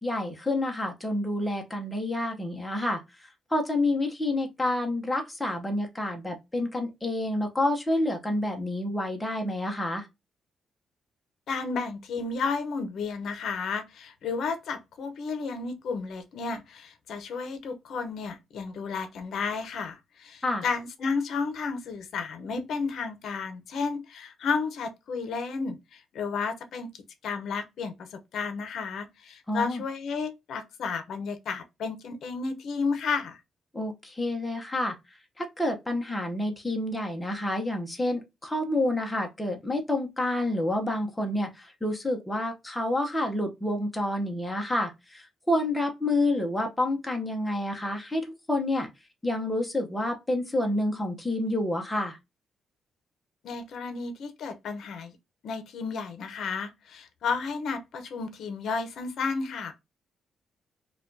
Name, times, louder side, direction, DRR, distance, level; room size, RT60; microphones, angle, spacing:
voice 1, 0.0-10.1 20.4-20.6 29.5-29.8 33.7-35.0 35.4-48.9 49.2-52.2, left 1 dB, 5° left, 0.7 m, -29 dB
voice 2, 11.5-26.9 27.2-33.4 53.4-55.2 55.4-59.7, left 5 dB, 60° left, 0.7 m, -32 dB
4.8 x 2.3 x 2.6 m
cardioid pair, 180°, 0 cm